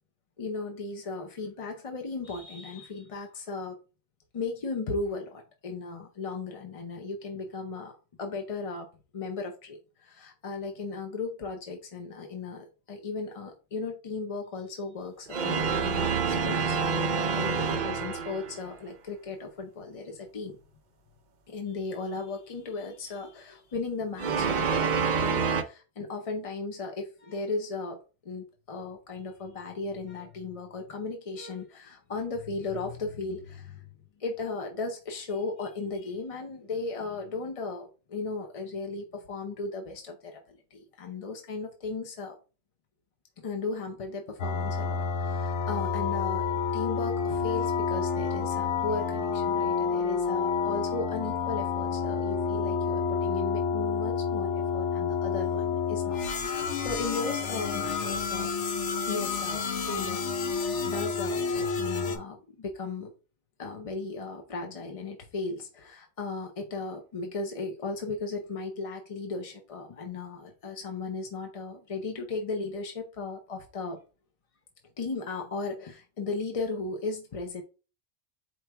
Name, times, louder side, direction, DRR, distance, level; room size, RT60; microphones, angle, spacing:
voice 1, 0.4-3.8 4.3-7.9 8.2-8.9 9.1-16.8 17.1-20.6 21.5-33.9 34.2-42.4 43.4-56.2 56.5-58.5 59.1-60.2 60.5-63.1 63.6-74.0 75.0-77.6, left 3 dB, 45° left, 3 dB, 0.4 m, -36 dB
sound 1, 15.3-18.7 24.2-25.6, right 5 dB, 60° right, 0.5 m, -27 dB
sound 2, 44.4-62.2, left 5 dB, 65° left, 0.9 m, -29 dB
4.6 x 2.6 x 4.4 m, 0.34 s
omnidirectional pair, 1.4 m